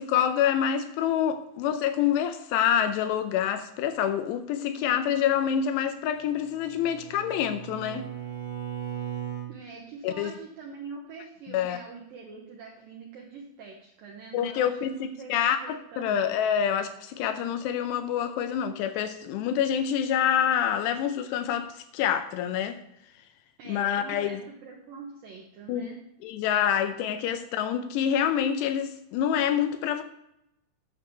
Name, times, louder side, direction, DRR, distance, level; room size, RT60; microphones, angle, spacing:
voice 1, 0.0-8.0 10.0-10.3 11.5-11.8 14.3-22.8 23.7-24.4 25.7-25.9 26.2-30.0, left 9 dB, 80° left, 2.5 m, -27 dB
Bowed string instrument, 6.1-9.5, right 9 dB, 45° left, 0.8 m, -37 dB
voice 2, 9.5-16.2 23.6-26.0, right 4 dB, 70° right, 2.3 m, -44 dB
9.7 x 7.1 x 6.0 m
omnidirectional pair, 5.4 m